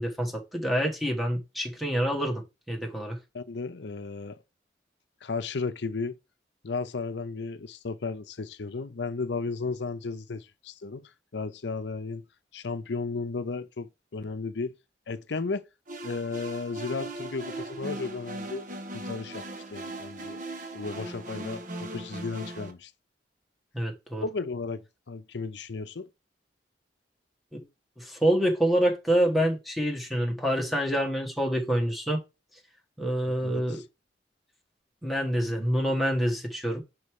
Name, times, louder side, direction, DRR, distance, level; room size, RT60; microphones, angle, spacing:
voice 1, 0.0-3.2 23.7-24.2 27.5-27.7 28.0-32.2 33.0-33.8 35.0-36.8, equal, ahead, 1.5 m, -27 dB
voice 2, 3.3-4.4 5.2-6.2 6.6-12.2 12.5-14.7 15.1-15.7 16.0-18.7 18.9-20.4 20.7-22.9 24.2-26.1 33.3-33.8, left 4 dB, 75° left, 0.6 m, -34 dB
sound 1, 15.9-22.7, right 1 dB, 45° right, 1.2 m, -38 dB
5.5 x 4.6 x 4.7 m
head